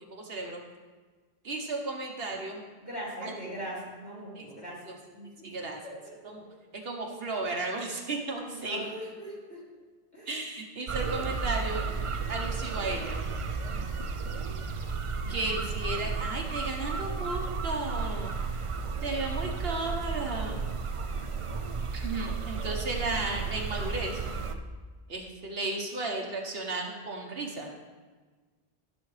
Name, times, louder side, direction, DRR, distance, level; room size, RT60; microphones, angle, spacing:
voice 1, 0.1-0.6 1.4-2.6 3.2-3.3 4.3-4.4 4.8-4.9 5.4-5.8 6.2-6.4 6.8-8.8 10.3-11.9 12.3-13.2 15.3-18.4 19.0-20.6 21.9-24.2 25.1-27.7, right 2 dB, 70° right, 1 dB, 1.2 m, -34 dB
voice 2, 2.8-4.8 5.1-6.0 6.2-6.5 8.3-9.6 10.1-10.3 15.2-15.5 21.0-21.4, right 1 dB, 20° left, -7 dB, 3.3 m, -41 dB
sound 1, 10.9-24.5, right 4 dB, 45° right, 0.4 m, -33 dB
15.0 x 6.2 x 3.2 m, 1.4 s
omnidirectional pair, 1.1 m